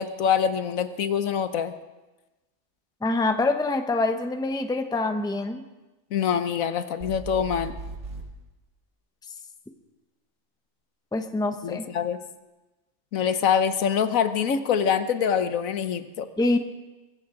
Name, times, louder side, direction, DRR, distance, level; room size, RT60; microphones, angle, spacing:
voice 1, 0.0-1.7 6.1-7.7 11.6-12.2 13.1-16.3, left 7 dB, 80° left, 10 dB, 1.3 m, -25 dB
voice 2, 3.0-5.6 11.1-11.9 16.4-16.6, left 2 dB, 5° left, 6 dB, 0.7 m, -25 dB
sound 1, 7.0-8.3, right 3 dB, 65° right, 2.5 m, -37 dB
23.5 x 14.5 x 3.8 m, 1.1 s
omnidirectional pair, 1.4 m